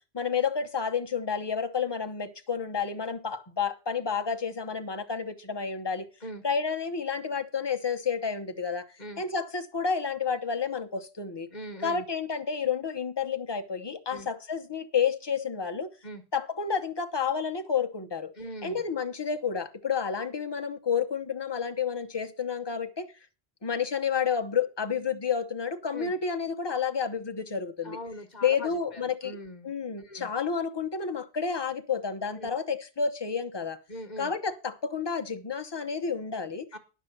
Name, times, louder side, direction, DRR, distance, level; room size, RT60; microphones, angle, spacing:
voice 1, 0.1-6.1 6.4-8.9 9.2-11.5 11.8-15.9 16.3-18.3 18.6-23.1 23.6-28.0 28.4-29.4 29.6-33.8 34.2-36.6, left 6 dB, 25° left, 0.9 m, -30 dB
voice 2, 11.5-12.0 14.1-14.3 16.0-16.2 18.3-18.8 25.9-26.1 27.8-29.7 30.0-30.3 32.3-32.5 33.9-34.3 36.7-36.8, equal, 40° left, 1.3 m, -41 dB
11.0 x 6.0 x 6.5 m
omnidirectional pair, 1.1 m